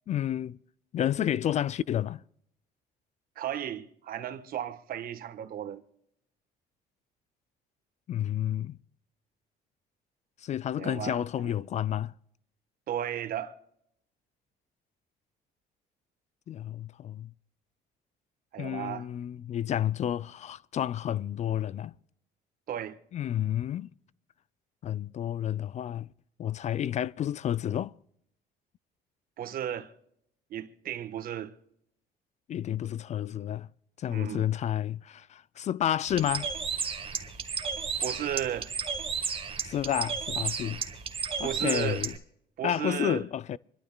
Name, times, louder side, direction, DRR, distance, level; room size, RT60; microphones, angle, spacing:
voice 1, 0.1-0.6 0.9-2.2 8.1-8.8 10.4-12.1 16.5-17.3 18.6-21.9 23.1-23.9 24.8-26.1 26.4-27.9 32.5-33.7 34.0-36.5 39.6-40.8 41.4-42.1 42.6-43.6, left 10 dB, 45° left, 0.4 m, -30 dB
voice 2, 3.4-5.8 10.8-11.5 12.9-13.5 18.5-19.1 22.7-23.0 29.4-29.9 30.5-31.5 34.0-34.5 38.0-38.7 41.4-42.0 42.6-43.2, right 10 dB, 60° right, 1.3 m, -34 dB
Bird, 36.1-42.2, right 5 dB, 30° right, 1.6 m, -33 dB
27.5 x 12.0 x 2.3 m
cardioid pair, 110°, 17 cm